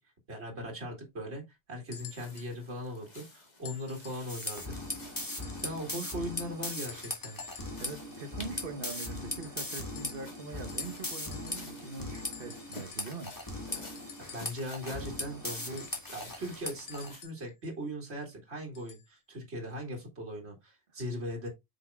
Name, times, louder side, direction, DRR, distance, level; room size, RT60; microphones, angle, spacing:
voice 1, 0.3-1.4 1.7-4.6 5.1-7.4 14.3-21.5, equal, 75° right, 2.3 m, -39 dB
sound 1, 1.9-2.5 3.6-4.3 5.3-5.8 6.8-7.9 8.9-10.4 10.7-11.8 12.1-14.7 15.8-17.5 18.7-19.1 20.0-20.1, left 6 dB, 90° left, 1.3 m, -50 dB
sound 2, 1.9-17.2, left 2 dB, 40° left, 1.8 m, -52 dB
sound 3, 4.3-17.1, left 1 dB, 20° left, 2.0 m, -39 dB
voice 2, 7.8-13.4, right 3 dB, 55° right, 1.2 m, -43 dB
7.5 x 5.4 x 2.3 m
omnidirectional pair, 1.1 m